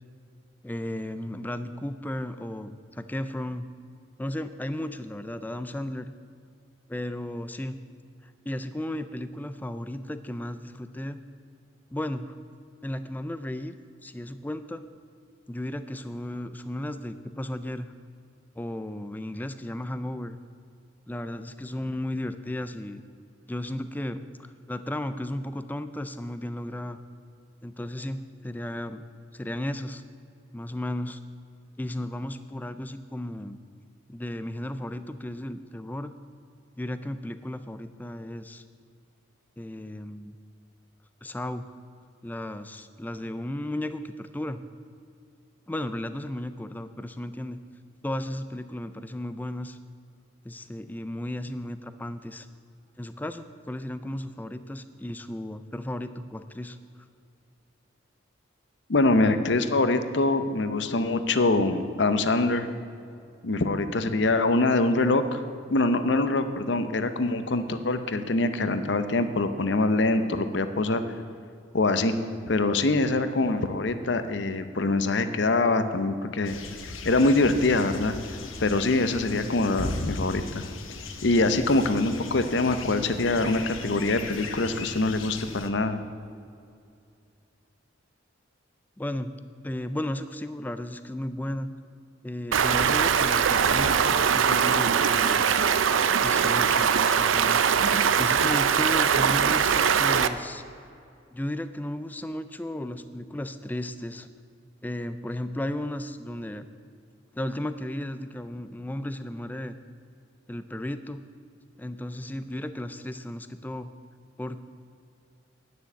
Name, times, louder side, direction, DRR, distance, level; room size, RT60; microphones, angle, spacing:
voice 1, 0.6-3.7 4.2-6.1 6.9-7.8 8.2-11.2 11.9-12.4 12.8-13.7 14.0-14.8 15.5-17.9 18.6-20.4 21.1-23.0 23.5-27.0 27.6-29.0 29.3-30.0 30.5-31.2 31.8-33.6 34.1-36.1 36.8-38.6 39.6-40.4 41.2-41.7 42.2-44.6 45.7-47.6 48.0-49.8 50.4-52.5 53.0-56.8 89.0-89.3 89.6-91.7 92.2-95.4 96.2-97.6 98.2-100.6 101.3-104.3 104.8-106.7 107.3-109.8 110.5-111.2 111.8-113.9 114.4-114.6, left 1 dB, 10° left, 11 dB, 0.3 m, -34 dB
voice 2, 58.9-62.7 63.4-65.4 65.7-71.0 71.7-72.1 72.5-76.6 77.0-78.2 78.6-80.6 81.2-86.0, left 2 dB, 65° left, 10 dB, 0.7 m, -24 dB
sound 1, 76.4-85.7, left 3 dB, 90° left, 1.0 m, -37 dB
Stream, 92.5-100.3, right 7 dB, 80° right, 0.5 m, -22 dB
9.8 x 6.4 x 8.1 m, 2.4 s
head